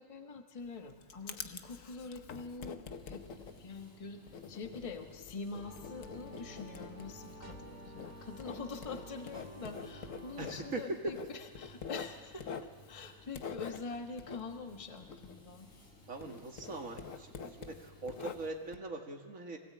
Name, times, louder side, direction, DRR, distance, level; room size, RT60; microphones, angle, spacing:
voice 1, 0.0-2.8 3.1-3.2 3.6-4.2 4.5-15.7, left 4 dB, 25° left, 5 dB, 1.3 m, -45 dB
Writing, 0.6-15.9 16.2-18.8, left 6 dB, 75° left, 1.4 m, -46 dB
sound 1, 2.9-18.5, equal, 50° left, 3.9 m, -60 dB
sound 2, 5.6-10.8, equal, 35° right, 2.1 m, -50 dB
voice 2, 10.4-11.1 16.1-19.6, right 2 dB, 80° right, 2 dB, 2.3 m, -41 dB
24.0 x 17.5 x 8.6 m, 1.5 s
omnidirectional pair, 1.4 m